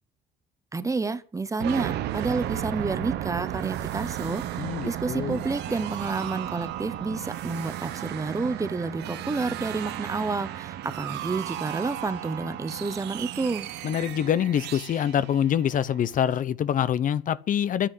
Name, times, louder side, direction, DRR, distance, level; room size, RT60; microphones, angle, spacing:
voice 1, 0.7-13.7, right 3 dB, 20° right, 1.2 m, -30 dB
sound 1, 1.6-16.3, right 12 dB, 80° right, 1.3 m, -34 dB
voice 2, 4.6-5.4 13.8-17.9, left 9 dB, 50° left, 0.9 m, -25 dB
10.5 x 10.0 x 9.5 m
cardioid pair, 110°, 17 cm